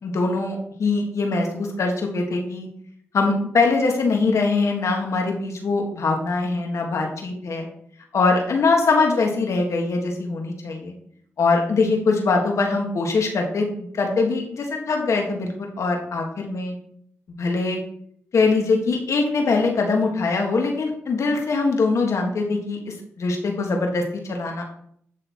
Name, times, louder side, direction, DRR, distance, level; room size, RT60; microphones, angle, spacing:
voice 1, 0.0-2.7 3.1-7.7 8.1-10.9 11.4-13.7 13.9-16.8 17.4-17.8 18.3-24.6, left 3 dB, 70° left, 2 dB, 1.5 m, -22 dB
9.0 x 3.3 x 4.3 m, 0.65 s
cardioid pair, 55°, 5 cm